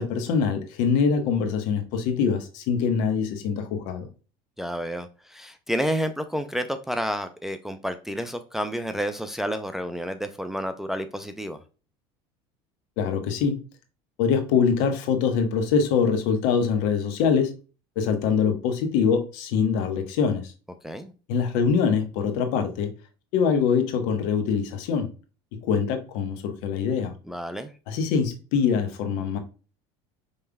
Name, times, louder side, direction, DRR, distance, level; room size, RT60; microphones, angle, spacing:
voice 1, 0.0-4.1 13.0-13.6 14.2-17.5 18.0-20.5 21.3-22.9 23.3-25.1 25.5-27.1 27.9-29.4, left 6 dB, 75° left, 6 dB, 1.1 m, -24 dB
voice 2, 4.6-11.6 20.8-21.1 27.3-27.7, equal, 5° right, 7 dB, 0.4 m, -30 dB
5.3 x 3.4 x 2.2 m, 0.34 s
supercardioid pair, 125°, 13 cm